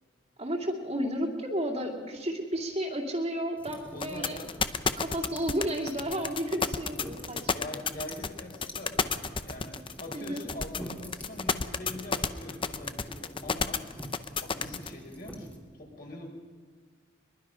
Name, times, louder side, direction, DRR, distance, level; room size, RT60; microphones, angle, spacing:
voice 1, 0.4-4.4 5.0-7.7 10.1-10.4, equal, 30° right, 0 dB, 2.5 m, -32 dB
sound 1, 3.6-15.6, equal, 5° left, 2.2 m, -47 dB
voice 2, 3.9-4.5 7.4-9.1 9.4-13.8 14.4-16.3, left 1 dB, 50° left, 1 dB, 5.0 m, -43 dB
sound 2, 4.0-14.9, left 5 dB, 25° left, 0.7 m, -30 dB
22.5 x 22.5 x 5.7 m, 1.5 s
head